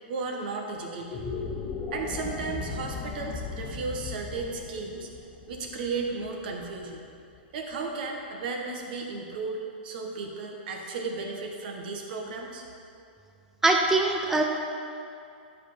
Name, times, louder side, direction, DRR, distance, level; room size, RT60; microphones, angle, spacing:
voice 1, 0.1-1.2 1.9-5.1 5.5-7.0 7.5-12.6, right 4 dB, 60° right, 1 dB, 1.7 m, -34 dB
sound 1, 1.0-7.4, left 4 dB, 30° left, 1.1 m, -37 dB
voice 2, 13.6-14.4, right 2 dB, 5° right, 1 dB, 0.6 m, -22 dB
11.5 x 5.6 x 5.9 m, 2.6 s
hypercardioid pair, 130°, 6 cm